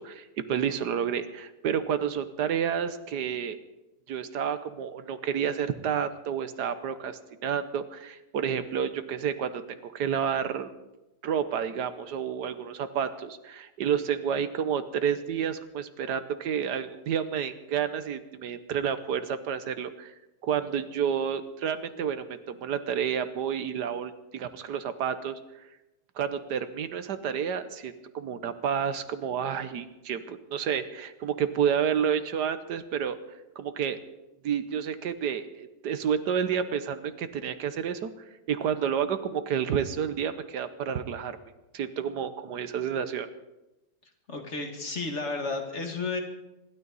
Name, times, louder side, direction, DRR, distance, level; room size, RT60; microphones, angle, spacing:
voice 1, 0.0-3.6 4.1-10.7 11.2-20.1 20.4-25.6 26.1-34.0 34.4-38.1 38.5-41.4 41.7-43.3, right 8 dB, 75° right, 11 dB, 1.5 m, -30 dB
voice 2, 44.3-46.2, left 3 dB, 40° left, 3 dB, 2.3 m, -32 dB
26.0 x 12.5 x 4.1 m, 1.0 s
omnidirectional pair, 1.8 m